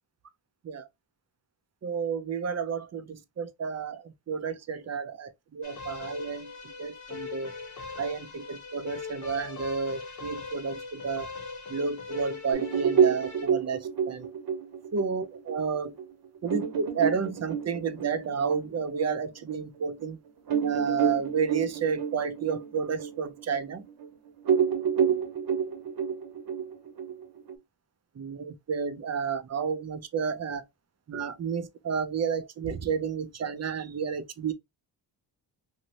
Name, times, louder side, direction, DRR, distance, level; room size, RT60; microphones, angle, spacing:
voice 1, 1.8-6.5 6.8-7.5 8.0-11.3 11.7-14.3 14.9-15.9 16.4-20.2 20.6-23.8 28.2-30.6 31.1-34.5, right 6 dB, 40° right, 0.5 m, -31 dB
sound 1, 5.6-13.5, left 4 dB, 40° left, 0.8 m, -41 dB
sound 2, 12.5-19.6 20.0-20.1 20.5-24.1 24.4-27.5, right 7 dB, 55° right, 0.9 m, -29 dB
3.0 x 2.7 x 2.7 m
wide cardioid pair, 130°, 43 cm